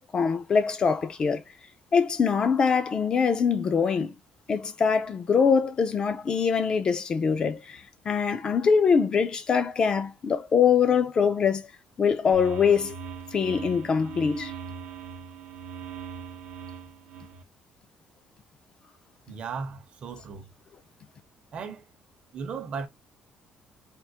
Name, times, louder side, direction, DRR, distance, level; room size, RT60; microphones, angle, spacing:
voice 1, 0.0-1.4 1.9-4.1 4.5-11.7 12.0-13.0 13.3-14.5, left 6 dB, 35° left, 0.4 m, -23 dB
sound 1, 12.3-17.4, right 6 dB, 80° right, 0.6 m, -40 dB
voice 2, 19.3-20.4 21.5-21.8 22.3-22.9, right 5 dB, 50° right, 0.7 m, -36 dB
3.6 x 2.4 x 2.8 m
cardioid pair, 140°, 3 cm